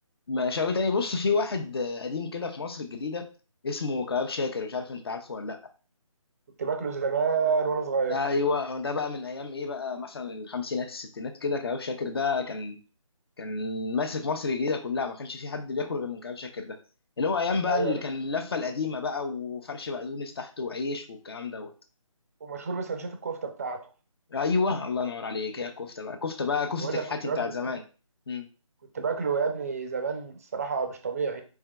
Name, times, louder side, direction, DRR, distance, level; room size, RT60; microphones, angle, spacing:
voice 1, 0.3-3.3 3.6-5.6 8.1-12.8 13.4-16.8 17.2-21.7 23.0-23.2 24.3-27.8 28.3-28.5, left 4 dB, 45° left, 7 dB, 0.7 m, -30 dB
voice 2, 6.6-8.2 17.7-17.9 22.4-23.8 26.8-27.5 28.9-31.4, right 5 dB, 25° right, 6 dB, 0.5 m, -29 dB
4.5 x 3.6 x 2.3 m, 0.35 s
figure-of-eight pair, 155°, 18 cm